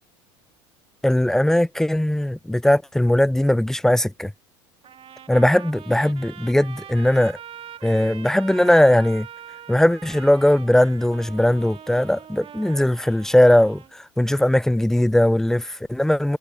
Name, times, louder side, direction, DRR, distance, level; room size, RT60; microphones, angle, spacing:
voice 1, 1.0-4.3 5.3-7.4 7.8-9.3 9.7-16.4, left 1 dB, 5° left, 0.5 m, -19 dB
Trumpet, 4.8-13.9, right 9 dB, 40° right, 3.1 m, -42 dB
hypercardioid pair, 85°, 15 cm